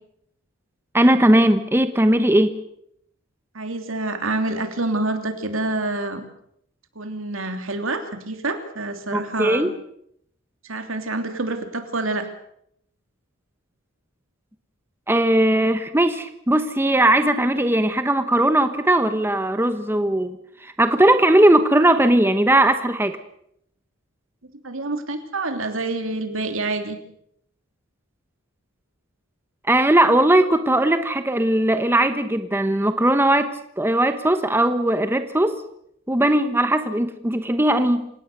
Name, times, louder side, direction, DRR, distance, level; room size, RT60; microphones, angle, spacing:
voice 1, 0.9-2.6 9.1-9.7 15.1-23.2 29.7-35.6 36.1-38.1, right 1 dB, 10° right, 9 dB, 1.1 m, -19 dB
voice 2, 3.5-6.2 6.9-9.7 10.6-12.3 24.6-27.0, right 2 dB, 70° right, 6 dB, 3.1 m, -27 dB
28.0 x 17.5 x 6.8 m, 0.72 s
head